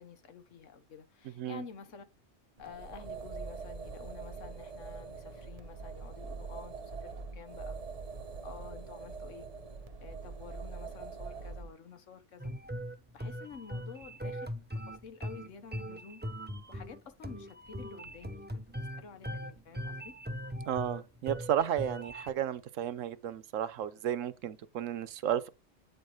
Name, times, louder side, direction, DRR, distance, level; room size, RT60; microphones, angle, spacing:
voice 1, 0.0-2.1 2.6-7.8 8.4-9.5 10.0-12.5 13.1-14.5 14.9-16.3 16.7-18.6 19.0-20.2, left 6 dB, 80° left, 1.4 m, -50 dB
sound 1, 2.6-11.7, right 4 dB, 35° right, 0.7 m, -43 dB
sound 2, 12.4-22.3, equal, 15° right, 0.3 m, -40 dB
voice 2, 20.7-25.5, right 10 dB, 80° right, 1.1 m, -33 dB
8.6 x 4.5 x 4.8 m
omnidirectional pair, 1.3 m